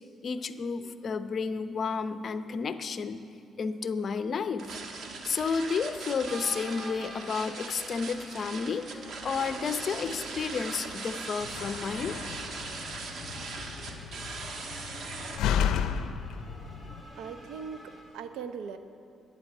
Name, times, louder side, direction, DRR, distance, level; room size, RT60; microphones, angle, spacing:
voice 1, 0.2-3.2 3.6-4.7 5.2-12.2, left 5 dB, 50° left, 10 dB, 0.7 m, -31 dB
sound 1, 4.6-15.4, right 4 dB, 60° right, 1.5 m, -40 dB
sound 2, 6.3-18.0, right 1 dB, 15° right, 2.4 m, -49 dB
Slam, 11.4-17.0, left 8 dB, 90° left, 0.5 m, -33 dB
voice 2, 16.8-18.8, right 6 dB, 90° right, 9 dB, 0.7 m, -40 dB
11.5 x 9.3 x 9.3 m, 2.6 s
cardioid pair, 90°, 0 cm